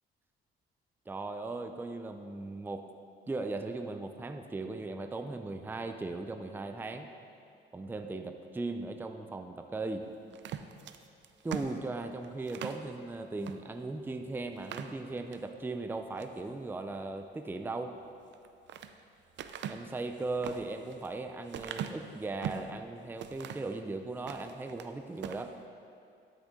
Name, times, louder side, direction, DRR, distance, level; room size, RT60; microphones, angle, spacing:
voice 1, 1.1-2.9 3.3-7.1 7.7-10.1 11.4-18.0 19.7-25.6, right 3 dB, 10° right, 7 dB, 0.4 m, -38 dB
sound 1, 10.3-12.8 13.4-13.6 14.0-14.1 14.5-15.5 15.9-16.4 18.2-18.9 19.4-22.7 23.2-23.7 24.1-24.9 25.2-25.5, right 8 dB, 65° right, 0.5 m, -41 dB
12.0 x 6.5 x 3.7 m, 2.5 s
cardioid pair, 90°, 20 cm